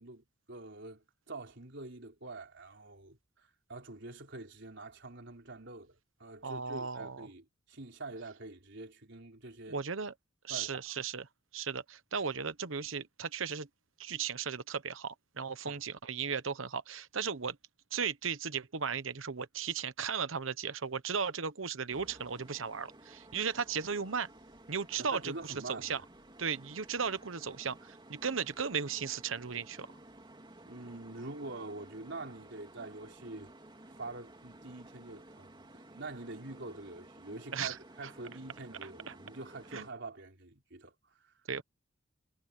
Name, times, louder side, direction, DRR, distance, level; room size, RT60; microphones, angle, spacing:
voice 1, 0.0-9.8 10.5-10.8 15.6-15.8 25.0-26.0 30.6-33.6 33.8-41.3, right 2 dB, 60° right, 4.1 m, -46 dB
voice 2, 6.4-7.3 9.7-10.1 10.4-11.2 11.5-13.7 14.0-17.6 17.9-24.3 24.7-26.0 26.4-29.9 37.5-37.8 39.1-39.2 39.7-39.9 41.5-41.6, right 6 dB, 75° right, 1.1 m, -36 dB
sound 1, 21.9-39.9, right 1 dB, 25° right, 2.7 m, -55 dB
head